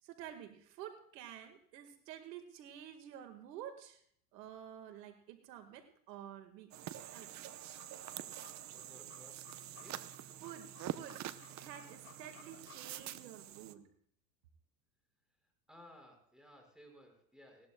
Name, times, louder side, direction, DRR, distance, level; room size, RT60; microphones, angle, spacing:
voice 1, 0.0-4.0 4.3-6.7 7.1-7.3 10.4-13.9, right 10 dB, 85° right, 6 dB, 2.0 m, -50 dB
sound 1, 6.7-13.7, right 12 dB, 35° right, 0.9 m, -46 dB
sound 2, 7.6-13.1, left 7 dB, 30° left, 6.2 m, -60 dB
voice 2, 8.7-10.2 15.4-17.7, left 1 dB, ahead, 2 dB, 5.6 m, -59 dB
20.0 x 16.5 x 2.3 m, 0.64 s
supercardioid pair, 115°, 48 cm